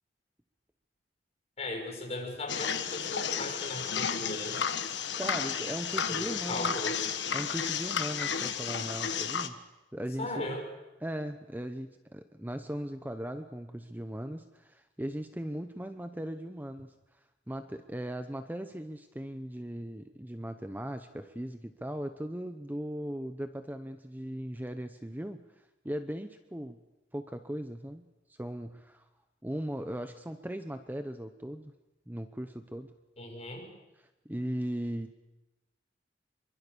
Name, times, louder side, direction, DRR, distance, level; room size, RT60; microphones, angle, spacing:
voice 1, 1.6-4.6 6.0-7.0 10.2-10.6 33.2-33.7, left 2 dB, 35° left, 1 dB, 6.4 m, -37 dB
sound 1, 2.5-9.5, left 7 dB, 85° left, 1.5 m, -32 dB
voice 2, 5.2-6.8 7.3-9.6 9.9-10.6 11.0-16.9 17.5-26.8 27.1-29.0 29.4-31.7 32.1-32.9 34.0-35.1, equal, 10° right, 8 dB, 0.8 m, -38 dB
26.0 x 23.5 x 7.0 m, 1.0 s
head